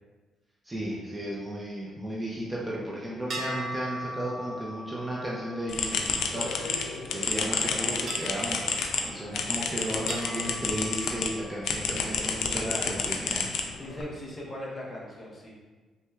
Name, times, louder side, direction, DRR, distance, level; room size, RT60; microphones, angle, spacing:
voice 1, 0.6-8.6 9.0-13.5, right 1 dB, 15° right, -5 dB, 0.6 m, -34 dB
sound 1, 3.3-7.0 8.1-9.6 10.1-11.8, right 1 dB, 55° right, 0.6 m, -40 dB
sound 2, 5.7-11.3 11.6-14.0, left 5 dB, 75° left, 0.4 m, -30 dB
voice 2, 12.6-13.1 13.8-15.5, left 1 dB, 25° left, -5 dB, 1.1 m, -39 dB
5.7 x 2.2 x 2.4 m, 1.3 s
cardioid pair, 90°, 0 cm